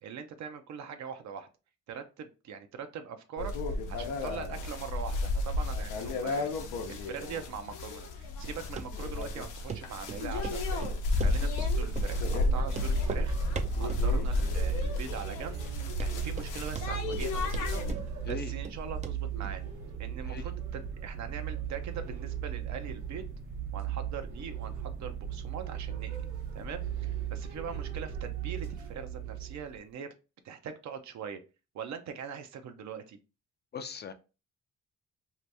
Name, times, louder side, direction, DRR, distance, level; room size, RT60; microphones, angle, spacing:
voice 1, 0.0-1.5 1.9-6.5 6.9-13.4 13.8-17.8 18.2-19.7 20.0-23.3 23.7-26.3 26.5-30.1 30.4-31.4 31.7-33.2, right 7 dB, 65° right, 8 dB, 0.6 m, -42 dB
sound 1, 3.4-17.9, left 2 dB, 90° left, 0.7 m, -32 dB
Run, 8.8-8.9 9.2-9.3 9.7-9.8 10.1-10.6 10.8-11.7 12.0-12.1 12.4-12.5 12.7-13.3 13.6-14.1 14.4-14.8 15.1-15.2 15.7-15.8 16.0-16.5 16.8-17.3 17.5-18.8 19.0-19.2 19.4-19.5, right 6 dB, 25° right, 0.4 m, -39 dB
sound 2, 11.6-29.8, right 9 dB, 80° right, 1.1 m, -37 dB
voice 2, 33.7-34.1, left 6 dB, 35° left, 8 dB, 0.4 m, -39 dB
2.8 x 2.6 x 3.3 m, 0.31 s
cardioid pair, 90°, 30 cm